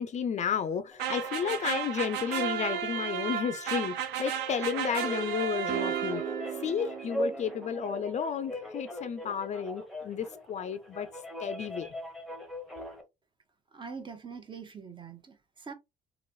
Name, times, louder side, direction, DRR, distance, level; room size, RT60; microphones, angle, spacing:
voice 1, 0.0-6.2 6.6-11.1 11.4-11.9, left 7 dB, 45° left, 0.5 m, -32 dB
sound 1, 0.9-13.0, equal, ahead, 0.9 m, -41 dB
sound 2, 1.0-6.5, right 9 dB, 85° right, 0.7 m, -33 dB
sound 3, 5.7-8.1, right 11 dB, 50° right, 0.4 m, -37 dB
voice 2, 13.7-15.7, right 5 dB, 30° right, 0.8 m, -43 dB
3.1 x 2.6 x 2.6 m
cardioid pair, 110°, 17 cm